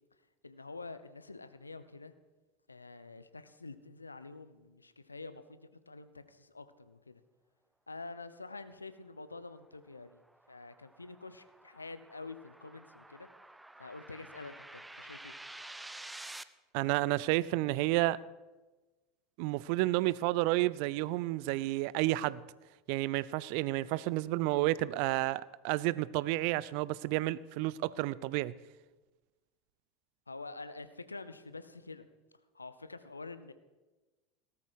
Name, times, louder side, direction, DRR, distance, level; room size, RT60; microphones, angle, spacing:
voice 1, 0.4-2.1 2.7-7.2 7.9-10.2 10.5-13.3 13.8-15.3 30.3-32.1 32.5-33.5, left 3 dB, 90° left, 0.8 m, -47 dB
sound 1, 9.6-16.4, right 1 dB, 5° right, 0.7 m, -50 dB
voice 2, 16.7-18.2 19.4-22.4 22.9-28.5, right 17 dB, 55° right, 0.5 m, -31 dB
17.5 x 13.5 x 4.8 m
figure-of-eight pair, 75°, 0 cm